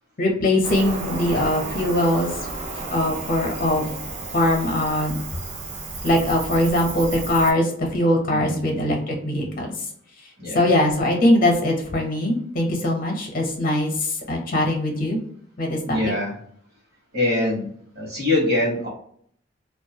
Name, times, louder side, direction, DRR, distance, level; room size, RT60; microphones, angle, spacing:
voice 1, 0.2-2.3 2.9-3.9 4.3-5.2 6.0-9.7 10.5-15.2 15.6-15.8, left 1 dB, 50° left, 1 dB, 0.7 m, -21 dB
Cricket, 0.6-7.5, right 3 dB, 40° right, 0.5 m, -32 dB
voice 2, 8.3-8.8 10.4-10.7 15.8-16.4 17.1-17.7 17.9-18.9, left 2 dB, 60° right, -2 dB, 1.1 m, -24 dB
2.3 x 2.2 x 2.7 m, 0.63 s
head